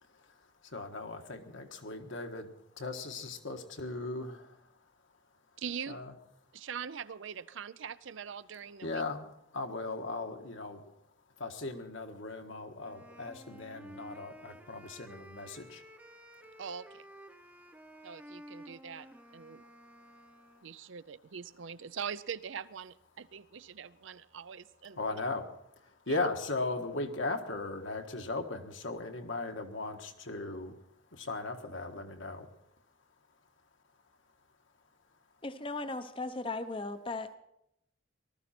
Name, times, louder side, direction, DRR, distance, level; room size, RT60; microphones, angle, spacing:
voice 1, 0.1-2.5 2.8-4.7 5.9-6.1 8.8-10.9 11.4-15.8 25.0-25.5 25.8-30.7 31.1-32.5, left 2 dB, 65° left, 4 dB, 1.5 m, -38 dB
voice 2, 5.6-6.0 6.5-9.0 16.6-17.1 18.0-19.1 19.3-19.6 20.6-25.0 26.1-26.2, right 7 dB, 65° right, 15 dB, 0.5 m, -42 dB
Wind instrument woodwind instrument, 12.8-20.7, equal, 10° right, 0.7 m, -53 dB
voice 3, 35.4-37.3, left 3 dB, 25° left, 10 dB, 0.7 m, -37 dB
19.0 x 13.5 x 4.4 m, 0.79 s
head